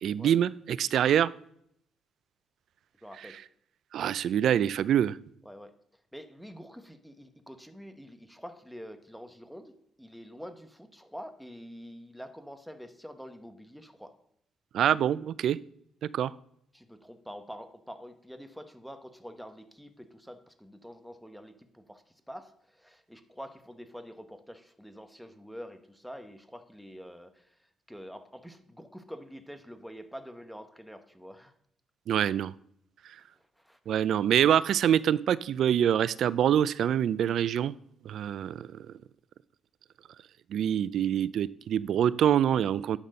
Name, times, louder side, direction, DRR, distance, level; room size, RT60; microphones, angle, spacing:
voice 1, 0.0-1.3 3.2-3.3 3.9-5.2 14.7-15.6 16.0-16.3 32.1-32.5 33.9-37.7 38.1-38.7 40.5-43.0, right 10 dB, 70° right, 19 dB, 0.3 m, -25 dB
voice 2, 3.0-3.4 5.4-5.7 6.1-14.1 16.7-27.4 27.9-31.5 33.6-34.0, equal, ahead, 8 dB, 1.0 m, -46 dB
10.0 x 4.2 x 6.4 m, 0.69 s
cardioid pair, 90°, 0 cm